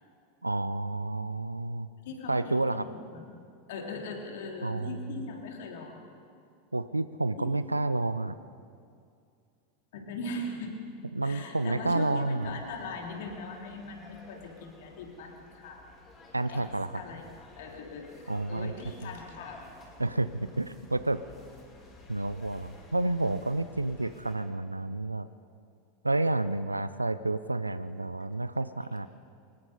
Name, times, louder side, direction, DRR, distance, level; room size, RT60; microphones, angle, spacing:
voice 1, 0.4-1.9 2.3-2.9 4.6-5.2 6.7-8.4 11.1-12.6 16.3-16.9 18.3-18.7 20.0-21.2 22.1-25.3 26.0-29.1, right 2 dB, 85° right, 14 dB, 0.5 m, -30 dB
voice 2, 2.0-3.4 3.7-6.0 7.4-7.5 9.9-10.8 11.2-15.9 16.4-16.7 16.9-17.3 17.6-19.6, left 3 dB, 55° left, 1 dB, 3.5 m, -40 dB
sound 1, 12.4-24.4, left 2 dB, 25° left, 6.1 m, -53 dB
24.0 x 21.5 x 5.4 m, 2.4 s
figure-of-eight pair, 85°, 0 cm